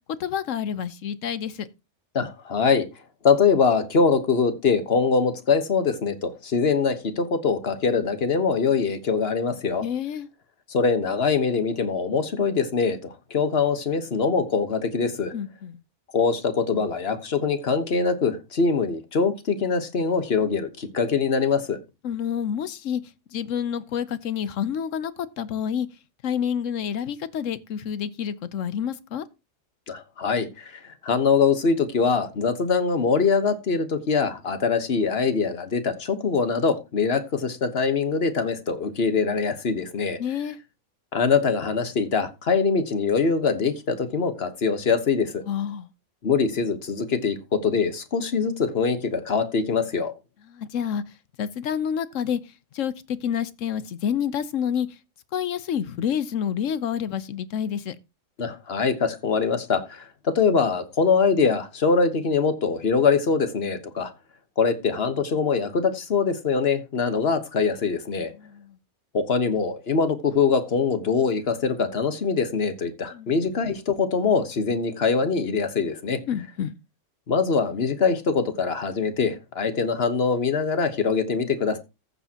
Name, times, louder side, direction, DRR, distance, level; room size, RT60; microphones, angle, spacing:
voice 1, 0.2-1.7 9.8-10.3 15.3-15.8 22.0-23.0 23.3-25.9 26.2-29.3 40.2-40.6 45.5-45.9 50.5-51.0 51.4-52.4 52.7-54.9 55.3-57.9 68.3-68.8 73.1-73.4 76.3-76.7, left 8 dB, 90° left, 1.2 m, -28 dB
voice 2, 2.1-2.9 3.2-9.8 10.7-15.3 16.1-21.8 29.9-40.2 41.1-45.4 46.2-50.1 58.4-64.1 64.6-68.3 69.1-76.2 77.3-81.8, left 5 dB, 55° left, 1.4 m, -23 dB
14.5 x 7.0 x 2.9 m
omnidirectional pair, 1.3 m